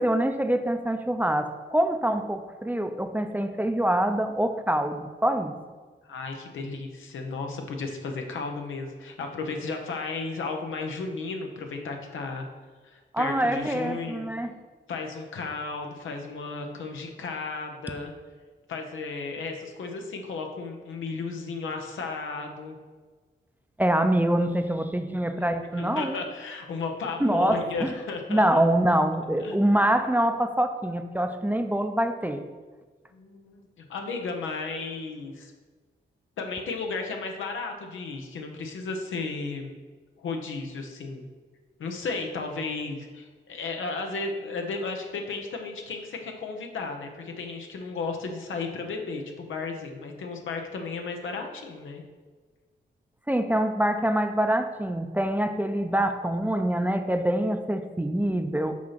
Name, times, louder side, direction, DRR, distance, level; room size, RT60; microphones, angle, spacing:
voice 1, 0.0-5.5 13.1-14.5 23.8-26.2 27.2-27.9 28.3-32.4 53.3-58.7, right 1 dB, 10° right, 7 dB, 0.6 m, -25 dB
voice 2, 6.1-12.5 12.8-14.3 14.9-18.1 18.7-22.8 25.8-28.6 29.4-29.6 33.1-35.5 36.4-39.8 40.2-41.3 41.8-52.0, left 4 dB, 90° left, 3 dB, 0.9 m, -34 dB
6.1 x 4.2 x 5.7 m, 1.4 s
cardioid pair, 60°, 20 cm